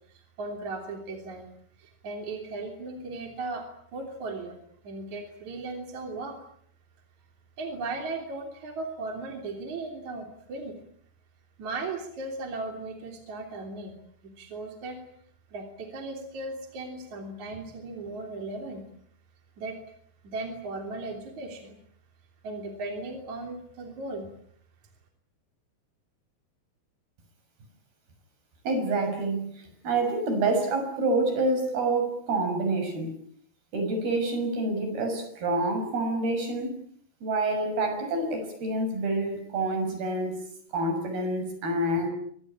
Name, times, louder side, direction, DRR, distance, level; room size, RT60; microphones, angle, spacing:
voice 1, 0.1-1.5 1.8-3.7 3.9-4.6 4.8-6.4 7.6-10.8 11.6-14.0 14.2-15.0 15.5-18.8 19.6-19.8 20.2-21.8 22.4-24.3, right 3 dB, 45° right, 3 dB, 4.3 m, -37 dB
voice 2, 28.6-33.1 33.7-36.8 37.2-40.4 40.7-42.1, right 2 dB, 65° right, 6 dB, 8.3 m, -27 dB
25.5 x 22.0 x 8.9 m, 0.66 s
omnidirectional pair, 4.8 m